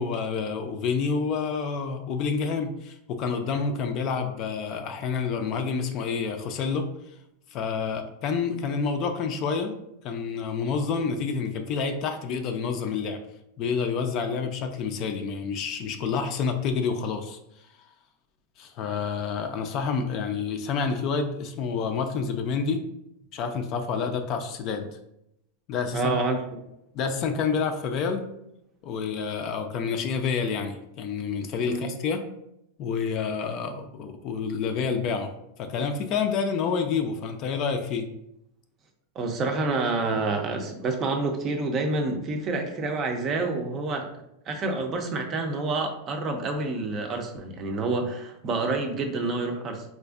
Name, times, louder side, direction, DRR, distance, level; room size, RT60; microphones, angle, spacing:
voice 1, 0.0-6.9 7.5-9.7 10.0-13.2 13.6-17.4 18.6-22.8 23.3-25.0 25.7-26.1 26.9-28.2 28.8-32.2 32.8-35.3 35.6-38.1, left 5 dB, 45° left, 6 dB, 0.4 m, -28 dB
voice 2, 25.9-26.6 31.7-31.9 39.2-44.1 44.5-49.8, right 3 dB, 30° right, 4 dB, 0.5 m, -28 dB
4.2 x 2.5 x 2.4 m, 0.82 s
supercardioid pair, 135°, 0 cm